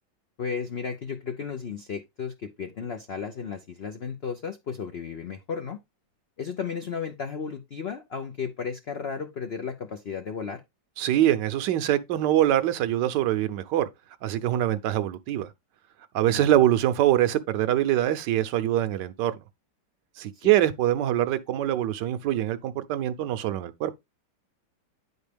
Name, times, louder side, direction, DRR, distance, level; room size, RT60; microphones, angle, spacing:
voice 1, 0.4-5.8 6.4-10.6 16.3-16.4, left 6 dB, 85° left, 0.5 m, -34 dB
voice 2, 11.0-13.9 14.2-15.5 16.1-19.4 20.2-23.9, right 12 dB, 75° right, 1.2 m, -24 dB
9.5 x 4.4 x 3.3 m
omnidirectional pair, 2.0 m